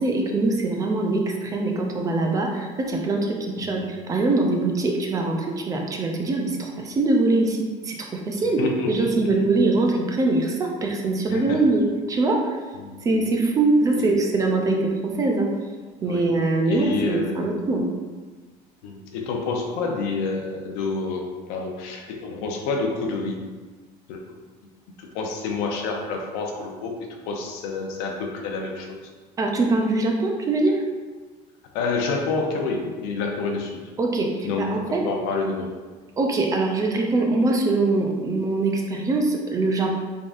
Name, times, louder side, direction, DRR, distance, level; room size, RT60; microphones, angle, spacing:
voice 1, 0.0-8.6 8.9-12.4 13.0-15.5 16.0-17.9 29.4-30.8 34.0-35.0 36.2-40.0, right 2 dB, 20° right, 1 dB, 0.4 m, -23 dB
voice 2, 8.6-9.3 11.3-11.7 12.8-13.0 13.9-14.2 16.0-16.4 16.7-17.5 18.8-23.4 24.1-24.2 25.0-26.9 27.3-29.0 31.7-33.8 34.4-35.7, left 3 dB, 80° left, 2 dB, 0.7 m, -28 dB
3.8 x 3.5 x 2.5 m, 1.4 s
cardioid pair, 155°, 15 cm